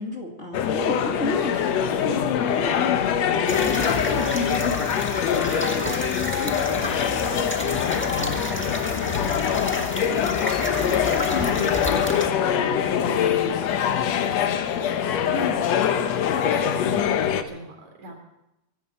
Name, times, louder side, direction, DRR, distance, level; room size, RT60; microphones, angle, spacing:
voice 1, 0.0-3.3 3.6-4.8 6.4-6.6 11.3-11.7 15.3-15.6, left 3 dB, 25° left, -2 dB, 2.2 m, -30 dB
sound 1, 0.5-17.4, left 8 dB, 70° left, 2.0 m, -24 dB
voice 2, 1.4-1.8 3.8-3.9 5.5-18.1, right 3 dB, 70° right, 2 dB, 4.7 m, -40 dB
sound 2, 3.5-12.3, left 1 dB, 10° left, 0.6 m, -31 dB
24.0 x 12.5 x 4.3 m, 0.89 s
omnidirectional pair, 3.3 m